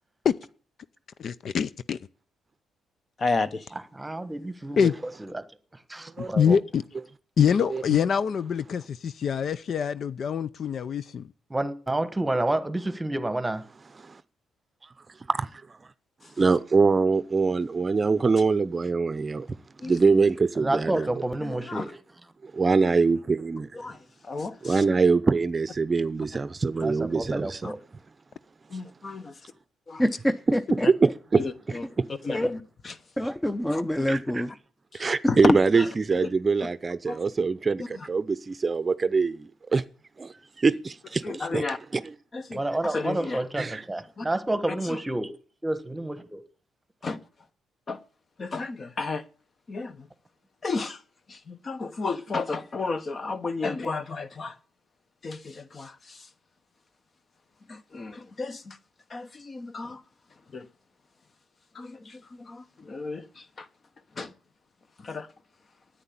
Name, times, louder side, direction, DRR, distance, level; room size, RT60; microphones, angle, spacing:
voice 1, 1.2-2.0 4.8-4.9 6.4-6.8 7.4-11.3, left 7 dB, 55° left, 0.6 m, -24 dB
voice 2, 3.2-3.7 16.4-16.5 19.8-19.9 21.4-21.8 23.7-24.8 27.6-27.7 28.7-29.4 29.9-30.0 30.8-30.9 31.4-31.8 32.2-32.9 33.7-34.1 34.9-35.9 37.1-37.2 37.8-38.1 41.2-41.8 42.3-43.4 44.2-44.3 44.7-45.0 47.0-47.2 47.9-48.0 48.4-49.2 49.7-50.1 50.6-51.0 51.3-54.6 55.2-56.3 57.7-58.8 59.1-60.0 60.5-60.7 61.7-63.7 64.2-64.3 65.0-65.3, left 3 dB, 40° left, 1.2 m, -32 dB
voice 3, 3.9-4.9 5.2-5.4 5.9-6.6 11.5-13.6 20.6-22.0 26.8-27.8 42.5-45.3 45.6-46.4, right 1 dB, 10° right, 1.4 m, -29 dB
voice 4, 16.4-19.5 19.8-21.1 22.4-23.7 24.6-27.6 30.9-31.4 32.0-32.1 34.1-34.4 34.9-39.8 40.2-41.6 41.9-42.1 43.6-43.8, right 4 dB, 30° right, 0.7 m, -24 dB
voice 5, 30.0-30.9 32.3-32.5 33.2-34.5 35.5-35.6, equal, 10° left, 0.7 m, -25 dB
9.8 x 9.1 x 8.6 m
cardioid pair, 90°, 0 cm